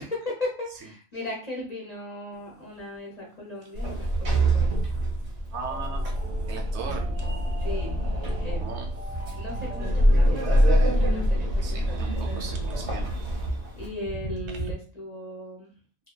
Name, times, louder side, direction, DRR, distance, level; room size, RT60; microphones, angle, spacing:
voice 1, 0.0-4.8 6.8-7.2 7.6-8.0 8.4-8.7 9.3-12.0 13.8-15.7, left 1 dB, 45° left, -3 dB, 0.6 m, -37 dB
sound 1, 2.3-14.7, right 2 dB, 20° left, 0.9 m, -43 dB
Sliding door, 3.7-13.9, equal, 90° right, 1.1 m, -25 dB
sound 2, 5.5-10.9, right 3 dB, 40° right, 0.6 m, -45 dB
voice 2, 5.5-6.0 6.5-7.2 8.4-8.9 11.6-13.1 14.5-14.6, right 5 dB, 75° right, 2 dB, 0.8 m, -38 dB
2.7 x 2.1 x 2.2 m, 0.39 s
omnidirectional pair, 1.2 m